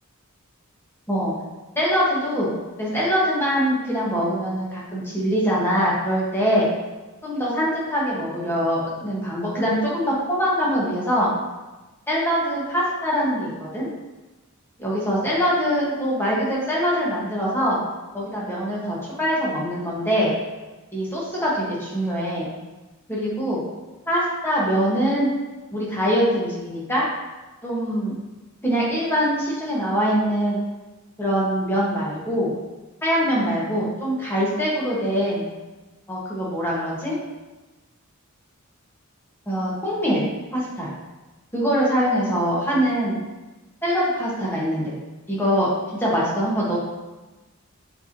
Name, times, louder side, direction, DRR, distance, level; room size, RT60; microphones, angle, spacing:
voice 1, 1.7-2.5 2.8-6.7 7.2-11.3 12.1-13.9 14.8-17.8 18.1-20.3 20.9-22.5 23.1-23.6 24.1-25.3 25.7-27.0 27.6-28.1 28.6-30.6 31.2-32.5 33.0-35.5 36.1-37.2 39.5-40.3 40.5-40.9 41.5-43.1 43.8-44.9 45.3-45.7 46.0-46.8, equal, 10° left, -6 dB, 1.6 m, -23 dB
6.9 x 4.7 x 3.0 m, 1.1 s
head